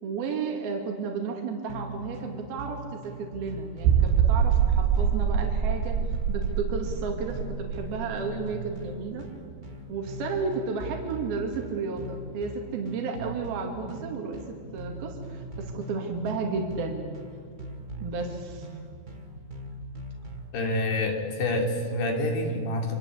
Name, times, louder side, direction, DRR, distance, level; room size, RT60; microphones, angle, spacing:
voice 1, 0.0-6.0 6.3-9.3 9.9-14.4 14.7-17.1 18.0-18.7, right 4 dB, 65° right, 3 dB, 4.1 m, -33 dB
sound 1, 1.7-20.5, right 1 dB, 50° right, 0.5 m, -41 dB
sound 2, 3.9-9.3 9.6-9.7 10.2-10.3, right 8 dB, 90° right, 3.1 m, -25 dB
voice 2, 20.5-22.9, left 1 dB, 80° left, 3 dB, 5.1 m, -27 dB
27.5 x 24.5 x 8.4 m, 2.2 s
omnidirectional pair, 4.7 m